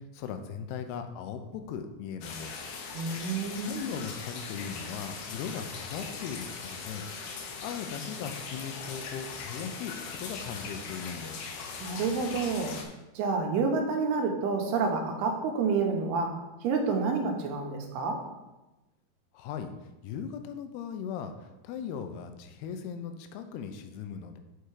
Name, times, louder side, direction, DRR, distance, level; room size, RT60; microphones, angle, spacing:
voice 1, 0.1-2.6 3.6-7.0 7.6-9.9 10.2-11.4 19.3-19.7 20.0-24.4, left 7 dB, 85° left, 7 dB, 2.7 m, -38 dB
sound 1, 2.2-12.8, left 5 dB, 70° left, 2.0 m, -40 dB
voice 2, 2.9-3.8 11.8-12.8 13.2-16.3 16.6-18.2, right 4 dB, 85° right, 3 dB, 3.0 m, -29 dB
6.8 x 5.7 x 4.7 m, 1.0 s
omnidirectional pair, 4.5 m